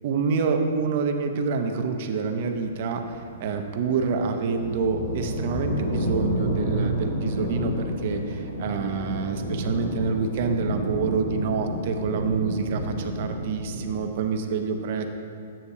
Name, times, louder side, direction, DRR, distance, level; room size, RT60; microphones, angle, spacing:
voice 1, 0.0-3.0 3.4-7.7 8.0-15.1, right 5 dB, 55° right, 5 dB, 0.6 m, -27 dB
sound 1, 2.4-13.9, equal, 75° left, 1.5 m, -30 dB
8.4 x 6.7 x 2.7 m, 2.4 s
hypercardioid pair, 135°, 0 cm